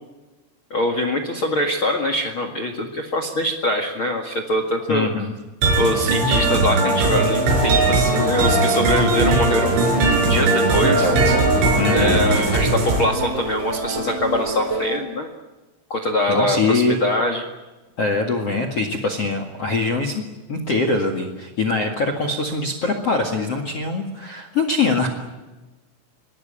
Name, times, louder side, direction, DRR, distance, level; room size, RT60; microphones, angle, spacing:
voice 1, 0.7-5.1 5.8-9.8 10.3-11.1 11.9-15.3 15.9-17.5, left 1 dB, 85° left, 6 dB, 1.1 m, -23 dB
voice 2, 4.9-5.3 10.8-11.3 11.7-12.2 16.3-17.0 18.0-20.2 20.5-25.1, left 3 dB, 50° left, 6 dB, 1.8 m, -23 dB
sound 1, 5.6-13.0, right 2 dB, 65° right, 7.5 m, -19 dB
sound 2, 7.0-15.0, right 2 dB, 30° right, 7.2 m, -29 dB
24.5 x 20.0 x 8.9 m, 1.2 s
omnidirectional pair, 5.9 m